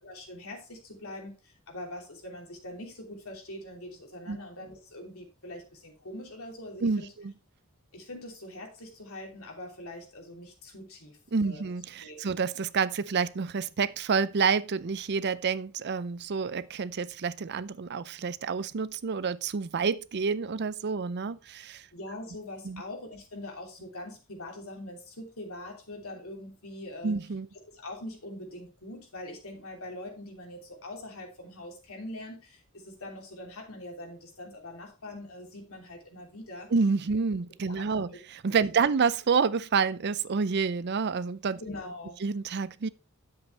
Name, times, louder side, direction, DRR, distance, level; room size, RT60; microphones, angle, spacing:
voice 1, 0.0-7.1 7.9-11.2 11.4-11.7 12.0-12.3 21.9-27.2 27.7-36.7 37.7-38.0 41.6-42.2, left 1 dB, 75° left, 3.1 m, -43 dB
voice 2, 6.8-7.3 11.3-21.9 22.6-22.8 27.0-27.5 36.7-38.1 38.4-41.6 42.2-42.9, right 5 dB, 50° right, 0.5 m, -28 dB
9.8 x 7.6 x 3.2 m
head